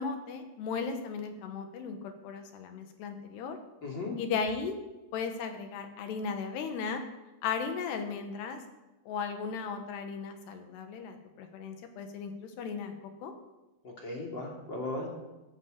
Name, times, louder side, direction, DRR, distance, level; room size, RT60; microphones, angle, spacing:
voice 1, 0.0-3.6 4.2-4.8 5.1-7.0 7.4-8.6 9.1-13.0 13.2-13.3, left 5 dB, 80° left, 6 dB, 3.6 m, -36 dB
voice 2, 3.8-4.1 13.8-15.1, left 2 dB, 30° left, -1 dB, 3.2 m, -37 dB
14.5 x 9.8 x 8.0 m, 1.1 s
omnidirectional pair, 4.8 m